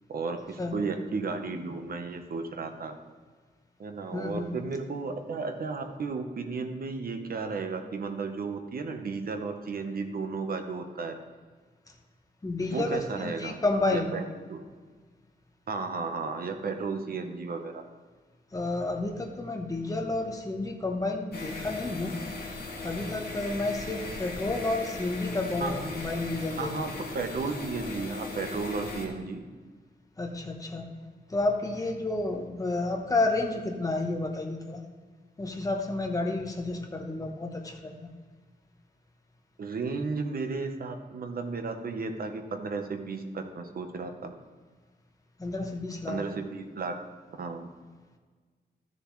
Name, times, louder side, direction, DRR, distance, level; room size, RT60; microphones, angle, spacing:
voice 1, 0.1-2.9 3.8-11.1 12.7-13.6 13.9-14.2 14.5-14.6 15.7-17.7 25.6-26.0 26.5-29.4 39.6-44.3 46.1-47.0 47.4-47.7, right 4 dB, 60° right, 5 dB, 0.9 m, -34 dB
voice 2, 4.1-4.6 12.4-14.1 18.5-22.1 22.8-26.7 30.2-30.9 31.3-34.8 35.4-38.1 45.4-46.2, left 2 dB, 20° left, 2 dB, 1.0 m, -30 dB
sound 1, 21.3-29.1, left 3 dB, 65° left, 2.1 m, -38 dB
13.5 x 6.8 x 3.2 m, 1.5 s
wide cardioid pair, 170°, 17 cm